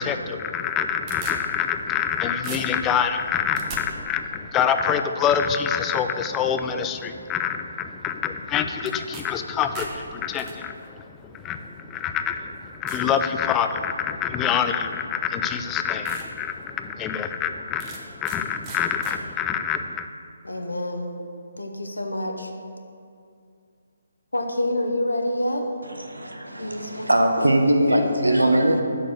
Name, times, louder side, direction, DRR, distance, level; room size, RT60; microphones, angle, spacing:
voice 1, 0.0-20.1, left 7 dB, 15° left, 8 dB, 0.3 m, -26 dB
sound 1, 0.6-2.1 2.4-3.8 8.8-9.2 9.6-10.5 11.4-11.5 12.1-12.2 12.9-13.1 13.6-14.0 15.1-15.2 15.6-15.7 16.0-16.3 16.7-16.8 17.8-18.4 18.6-19.2, right 4 dB, 20° right, 0.8 m, -39 dB
voice 2, 20.4-21.1 21.6-22.5 24.3-25.7 26.6-27.5 27.9-28.1, left 1 dB, 80° left, 4 dB, 0.8 m, -27 dB
voice 3, 26.0-28.8, right 1 dB, 80° right, 4 dB, 0.9 m, -21 dB
6.3 x 5.0 x 6.4 m, 2.4 s
figure-of-eight pair, 140°, 0 cm